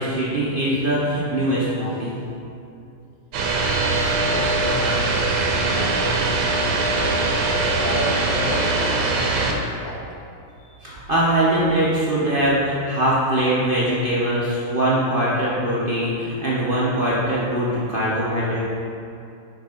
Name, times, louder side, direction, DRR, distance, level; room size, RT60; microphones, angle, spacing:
voice 1, 0.0-2.1 10.8-18.6, right 1 dB, 50° right, -8 dB, 0.6 m, -22 dB
sound 1, 3.3-9.5, right 3 dB, 65° right, 1.4 m, -21 dB
voice 2, 3.4-5.3 5.7-7.2 7.5-10.0 10.6-10.9, left 2 dB, 65° left, -1 dB, 1.6 m, -33 dB
6.1 x 6.0 x 4.3 m, 2.5 s
omnidirectional pair, 2.4 m